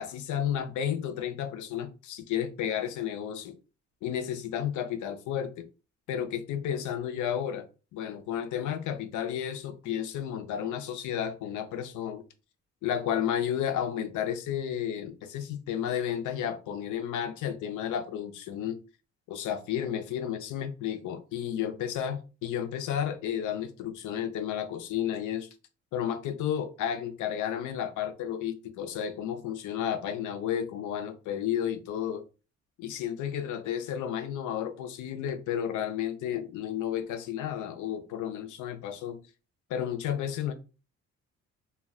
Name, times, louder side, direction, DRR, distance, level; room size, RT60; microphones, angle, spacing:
voice 1, 0.0-3.6 4.0-5.7 6.1-7.7 7.9-12.2 12.8-18.8 19.3-25.5 25.9-32.2 32.8-39.2 39.7-40.5, left 9 dB, 80° left, 0.5 m, -32 dB
2.3 x 2.1 x 3.5 m
cardioid pair, 90°, 30 cm